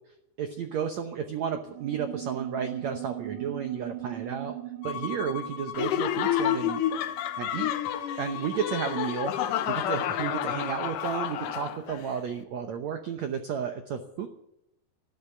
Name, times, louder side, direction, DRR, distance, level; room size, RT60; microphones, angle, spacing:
voice 1, 0.4-4.5 4.8-6.8 7.4-7.7 8.2-14.3, right 7 dB, 85° right, 7 dB, 1.5 m, -32 dB
sound 1, 1.6-7.6, right 14 dB, 70° right, 2.1 m, -40 dB
Bowed string instrument, 4.8-11.4, left 9 dB, 90° left, 3.1 m, -39 dB
Laughter, 5.7-12.1, left 10 dB, 70° left, 2.2 m, -30 dB
13.0 x 12.0 x 7.2 m, 0.84 s
omnidirectional pair, 4.6 m